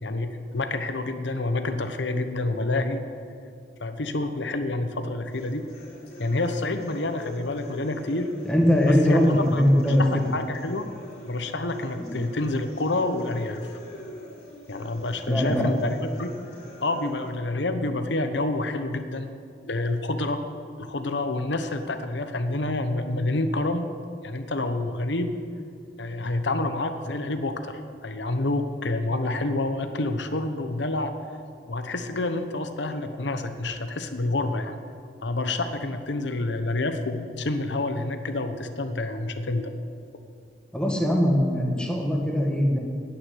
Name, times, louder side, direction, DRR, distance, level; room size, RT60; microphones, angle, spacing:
voice 1, 0.0-3.0 3.8-5.6 6.2-8.3 8.8-9.6 10.0-10.8 11.3-13.6 14.7-16.3 16.8-19.3 19.7-20.4 20.8-23.9 24.2-25.4 26.0-31.1 31.7-34.8 35.2-39.7, left 2 dB, 80° left, 8 dB, 1.0 m, -28 dB
sound 1, 5.3-17.3, left 1 dB, 55° left, 3.9 m, -45 dB
voice 2, 8.4-10.0 12.0-12.1 15.3-15.7 40.7-42.8, equal, 5° left, 0 dB, 1.5 m, -21 dB
10.0 x 9.2 x 9.5 m, 2.4 s
head